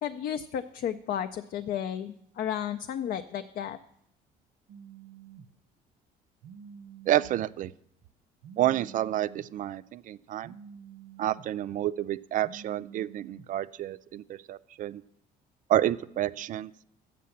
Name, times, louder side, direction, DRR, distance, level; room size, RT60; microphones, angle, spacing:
voice 1, 0.0-3.8, left 9 dB, 60° left, 8 dB, 0.4 m, -33 dB
Telephone, 4.7-5.5 6.4-7.5 8.4-9.5 10.4-11.5 12.4-13.5, right 7 dB, 85° right, 0.8 m, -48 dB
voice 2, 7.1-7.7 8.6-10.5 11.2-15.0 15.7-16.7, right 13 dB, 50° right, 15 dB, 0.4 m, -29 dB
7.5 x 7.4 x 7.0 m, 0.75 s
cardioid pair, 110°, 17 cm